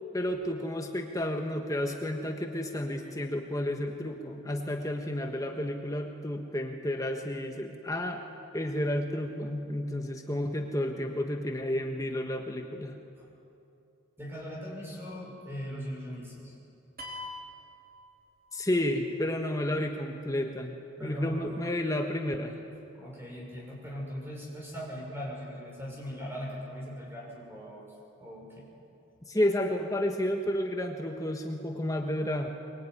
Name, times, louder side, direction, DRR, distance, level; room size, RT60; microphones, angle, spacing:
voice 1, 0.1-8.2 8.5-13.0 18.5-22.5 29.3-32.5, left 1 dB, 15° left, 3 dB, 1.4 m, -31 dB
voice 2, 14.2-16.5 21.0-21.5 22.9-27.8 28.2-28.7, equal, 10° right, -3 dB, 6.7 m, -39 dB
sound 1, 17.0-18.7, left 2 dB, 45° right, 4.1 m, -43 dB
23.5 x 22.5 x 9.8 m, 2.7 s
head